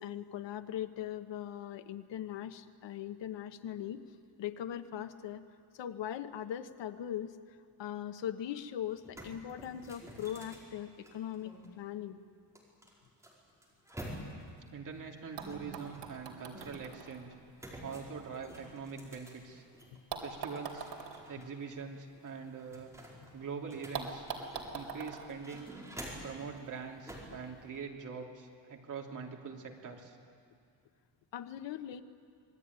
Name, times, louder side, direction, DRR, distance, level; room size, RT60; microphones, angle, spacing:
voice 1, 0.0-4.0 4.4-5.4 5.8-7.3 7.8-11.5 11.8-12.2 31.3-32.0, left 10 dB, 80° left, 9 dB, 1.3 m, -40 dB
sound 1, 8.5-8.6 8.9-11.7 12.6-14.6 15.4-17.0 17.6-20.0 20.4-21.5 21.8-21.9 22.3-24.9 25.3-26.4 27.1-27.4, equal, 5° right, 5.1 m, -48 dB
voice 2, 14.7-17.3 17.8-19.6 20.2-20.9 21.3-22.9 23.3-24.3 24.7-25.7 26.2-30.2, right 5 dB, 45° right, 0 dB, 3.1 m, -43 dB
sound 2, 14.9-15.0 15.4-19.4 20.1-23.1 23.3-23.4 23.9-26.3 27.3-27.4, right 5 dB, 70° right, 3.8 m, -45 dB
26.5 x 20.5 x 9.7 m, 2.2 s
cardioid pair, 160°, 43 cm